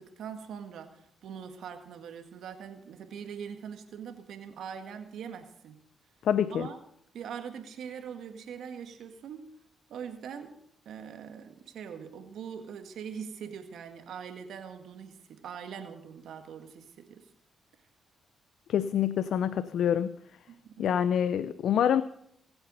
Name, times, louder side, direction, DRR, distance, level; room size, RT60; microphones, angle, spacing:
voice 1, 0.0-5.8 6.5-6.8 7.1-9.5 9.9-10.5 10.8-17.2 20.5-21.0, right 7 dB, 75° right, 1.8 m, -42 dB
voice 2, 6.2-6.7 18.7-20.2 20.8-22.0, left 9 dB, 75° left, 0.5 m, -26 dB
22.5 x 8.0 x 5.5 m
supercardioid pair, 60°, 0 cm